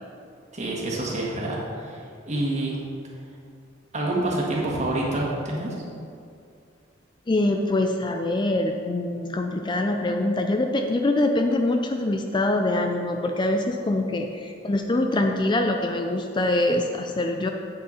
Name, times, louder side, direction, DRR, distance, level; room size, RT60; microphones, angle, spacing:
voice 1, 0.5-2.0 2.3-2.8 3.9-5.7, right 1 dB, 35° right, -3 dB, 1.8 m, -27 dB
voice 2, 7.3-17.5, left 2 dB, 25° left, 4 dB, 0.4 m, -24 dB
8.2 x 7.7 x 4.2 m, 2.4 s
head